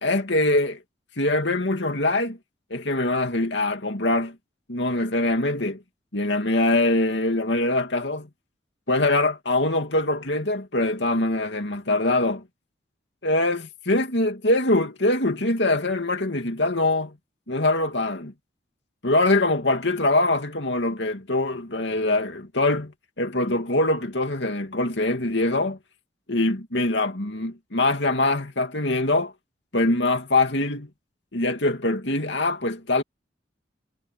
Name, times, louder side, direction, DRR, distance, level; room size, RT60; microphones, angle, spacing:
voice 1, 0.0-0.8 1.2-2.4 2.7-4.3 4.7-5.8 6.1-8.3 8.9-12.4 13.2-17.1 17.5-18.3 19.0-25.8 26.3-29.3 29.7-30.9 31.3-33.0, left 2 dB, 70° left, 2.6 m, -23 dB
head